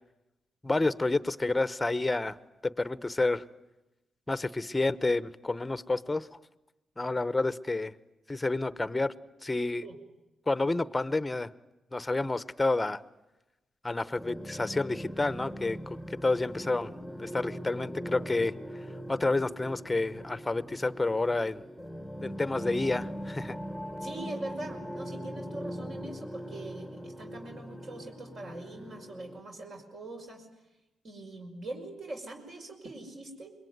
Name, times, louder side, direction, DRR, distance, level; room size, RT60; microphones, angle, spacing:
voice 1, 0.6-2.4 2.6-3.4 4.3-6.3 7.0-7.9 8.3-9.1 9.4-9.9 10.5-11.5 11.9-13.0 13.8-16.9 17.2-18.5 19.1-21.6 22.2-23.6, left 2 dB, 15° left, 15 dB, 0.9 m, -29 dB
sound 1, 14.2-29.4, equal, ahead, 1.3 m, -41 dB
voice 2, 24.0-30.5 31.0-33.5, right 2 dB, 50° right, 2 dB, 5.5 m, -42 dB
26.0 x 22.0 x 9.5 m, 1.0 s
cardioid pair, 100°, 0 cm